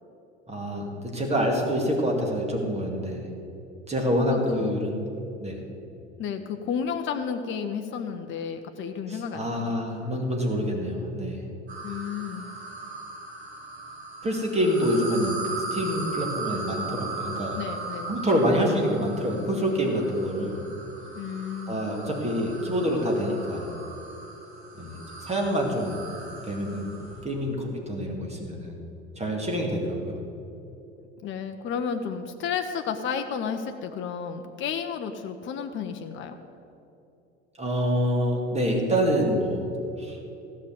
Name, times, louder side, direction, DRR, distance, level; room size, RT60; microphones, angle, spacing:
voice 1, 0.5-3.2 3.9-5.0 5.4-5.6 9.1-11.4 14.2-17.6 18.1-20.6 21.7-23.7 24.8-26.0 26.4-26.9 27.2-28.8 29.2-30.2 37.6-39.7 40.0-40.2, equal, 20° right, 1 dB, 2.2 m, -26 dB
voice 2, 4.3-4.7 6.2-9.8 11.8-12.5 17.5-18.2 21.1-21.8 31.2-36.4, left 7 dB, 35° left, 6 dB, 0.9 m, -32 dB
sound 1, 11.7-27.3, right 3 dB, 75° right, 2.8 m, -38 dB
15.5 x 6.4 x 7.9 m, 2.8 s
figure-of-eight pair, 65°, 32 cm